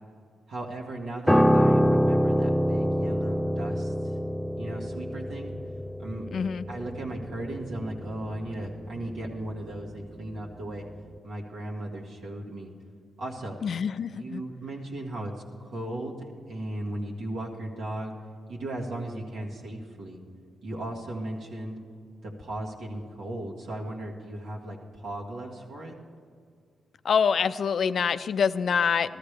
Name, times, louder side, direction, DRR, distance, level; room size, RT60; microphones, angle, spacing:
voice 1, 0.5-4.1 4.6-5.5 6.0-6.3 6.7-10.8 11.2-12.7 13.2-13.6 14.1-15.3 15.6-18.1 18.5-20.2 20.6-21.8 22.2-25.9, right 1 dB, 80° right, -2 dB, 1.8 m, -36 dB
Piano, 1.3-10.6 10.9-11.2, equal, 5° left, 0.6 m, -26 dB
voice 2, 6.3-6.7 13.6-14.4 27.0-29.2, left 6 dB, 65° left, 14 dB, 0.3 m, -25 dB
14.0 x 13.5 x 3.4 m, 2.1 s
supercardioid pair, 55°, 0 cm